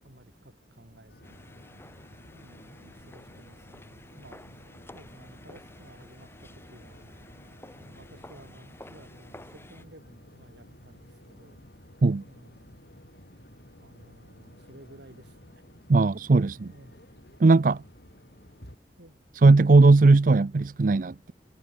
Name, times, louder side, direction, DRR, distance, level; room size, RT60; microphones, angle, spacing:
voice 1, 0.0-1.5 2.3-4.7 4.9-7.2 7.8-11.7 12.3-12.8 13.8-15.6 16.7-17.0 19.0-19.2, right 1 dB, 80° right, 7.0 m, -54 dB
sound 1, 1.1-18.8, equal, 60° left, 7.3 m, -53 dB
sound 2, 1.2-9.8, left 1 dB, 15° left, 2.8 m, -51 dB
voice 2, 15.9-16.7 17.4-17.8 19.4-21.3, right 3 dB, 50° right, 0.5 m, -18 dB
head